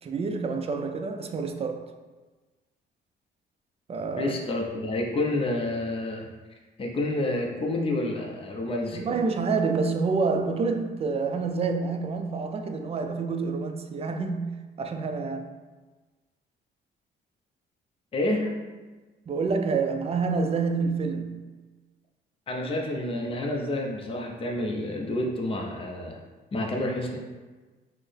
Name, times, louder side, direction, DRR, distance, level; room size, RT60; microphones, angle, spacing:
voice 1, 0.0-1.8 3.9-4.3 8.9-14.5 14.8-15.5 19.3-21.4, right 4 dB, 30° right, 0.4 m, -28 dB
voice 2, 4.2-6.3 6.8-9.1 18.1-18.5 22.5-26.2 26.5-27.2, left 1 dB, 30° left, 0.5 m, -29 dB
4.2 x 2.0 x 3.3 m
cardioid pair, 90°, 20 cm